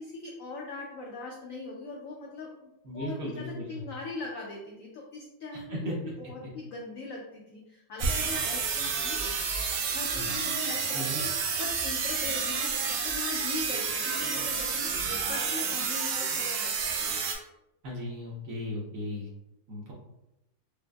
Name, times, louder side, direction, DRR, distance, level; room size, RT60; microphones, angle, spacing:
voice 1, 0.0-9.2 9.9-12.7 13.0-17.3, left 3 dB, 85° left, -1 dB, 0.7 m, -41 dB
voice 2, 2.8-3.8 5.5-5.9 10.9-11.2 17.8-19.3 19.7-19.9, left 1 dB, 60° right, -4 dB, 1.0 m, -36 dB
sound 1, 8.0-17.4, right 5 dB, 80° right, 1.3 m, -30 dB
5.0 x 2.0 x 2.2 m, 0.92 s
omnidirectional pair, 2.0 m